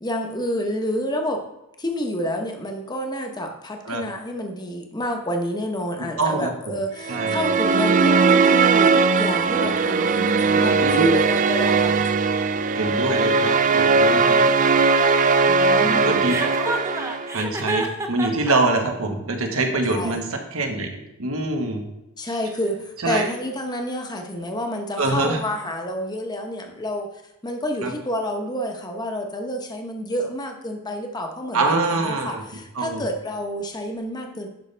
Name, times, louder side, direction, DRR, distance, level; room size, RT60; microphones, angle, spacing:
voice 1, 0.0-1.4 1.8-12.1 15.5-16.4 19.9-20.2 22.2-27.1 27.4-34.5, equal, 20° left, 3 dB, 1.0 m, -29 dB
voice 2, 6.2-6.5 7.1-7.4 10.8-11.1 12.7-14.4 15.8-16.7 17.3-20.2 20.5-21.8 23.0-23.3 25.0-25.4 27.8-27.9 31.5-32.4 32.8-33.0, right 2 dB, 80° right, 3 dB, 1.4 m, -24 dB
sound 1, 7.0-17.4, right 4 dB, 35° right, 0.4 m, -19 dB
Chuckle chortle, 16.3-18.5, right 2 dB, 15° right, 0.8 m, -28 dB
11.5 x 5.4 x 3.4 m, 0.95 s
head